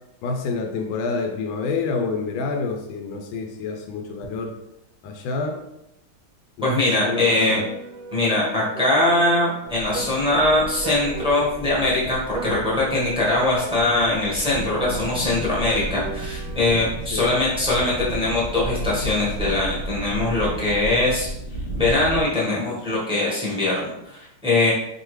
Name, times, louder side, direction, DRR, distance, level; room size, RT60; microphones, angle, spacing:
voice 1, 0.2-4.5 5.0-5.6 6.6-6.7 7.0-7.6 17.1-17.3, left 4 dB, 75° left, 3 dB, 1.3 m, -28 dB
voice 2, 6.6-7.6 8.1-21.3 21.7-24.7, left 2 dB, 5° right, -6 dB, 0.7 m, -22 dB
Piano, 7.5-11.9 12.3-16.9, right 5 dB, 75° right, 1.1 m, -37 dB
sound 1, 9.6-22.2, right 1 dB, 40° left, 0.6 m, -33 dB
4.7 x 2.7 x 3.1 m, 0.84 s
omnidirectional pair, 2.3 m